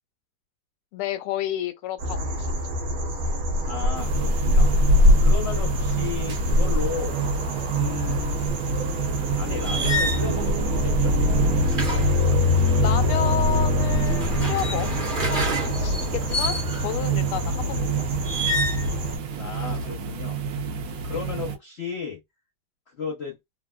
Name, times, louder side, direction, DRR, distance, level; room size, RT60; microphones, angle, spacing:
voice 1, 0.9-2.5 12.8-17.9 21.1-21.2, left 11 dB, 85° left, 1.5 m, -31 dB
sound 1, 2.0-19.2, left 2 dB, 55° right, 1.1 m, -24 dB
voice 2, 3.6-4.7 5.2-7.1 7.7-8.4 9.3-11.1 19.4-20.4 21.0-22.2 23.0-23.4, left 6 dB, 70° left, 0.6 m, -34 dB
sound 2, 3.9-21.6, right 7 dB, 75° right, 0.8 m, -29 dB
sound 3, 9.6-10.3 11.6-13.0 14.0-17.0 18.3-18.9 19.3-19.9, equal, 40° right, 0.7 m, -29 dB
3.4 x 2.4 x 2.2 m
omnidirectional pair, 2.3 m